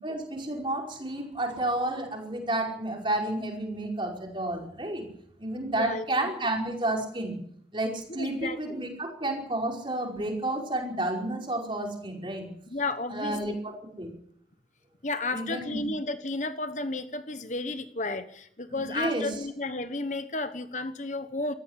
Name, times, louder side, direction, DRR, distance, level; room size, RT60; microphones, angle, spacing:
voice 1, 0.0-5.0 5.4-7.4 7.7-12.5 13.1-14.1 15.3-15.8 18.7-19.3, right 1 dB, 30° right, 1 dB, 5.2 m, -31 dB
voice 2, 5.7-6.3 8.1-8.9 12.7-13.6 15.0-21.5, left 2 dB, 45° left, 10 dB, 1.1 m, -33 dB
18.5 x 14.5 x 10.0 m, 0.67 s
head